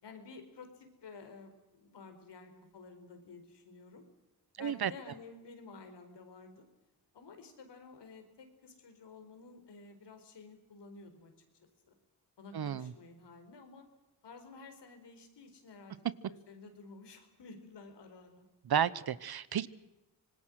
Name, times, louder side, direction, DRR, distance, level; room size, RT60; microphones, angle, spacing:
voice 1, 0.0-4.0 4.6-6.6 7.1-11.7 12.4-13.9 14.2-16.0 16.3-18.5, left 4 dB, 80° left, 4.6 m, -52 dB
voice 2, 4.6-4.9 12.5-12.9 18.6-19.7, right 8 dB, 65° right, 1.1 m, -32 dB
25.5 x 20.5 x 6.5 m
cardioid pair, 75°, 41 cm